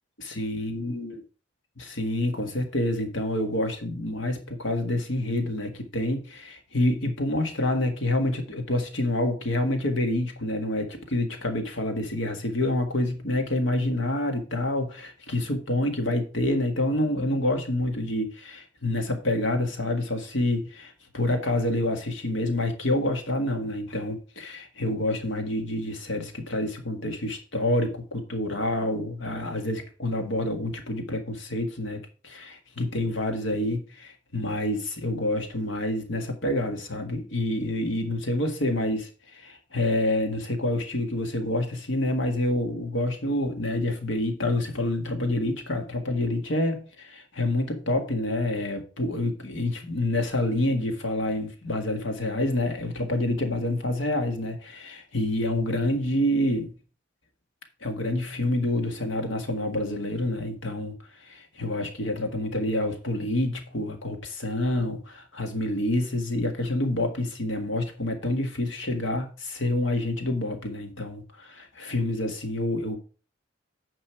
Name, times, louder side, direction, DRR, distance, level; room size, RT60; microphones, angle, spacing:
voice 1, 0.2-1.2 1.8-56.7 57.8-61.0 61.2-73.0, left 1 dB, 65° left, 1.8 m, -27 dB
9.7 x 5.4 x 4.5 m
head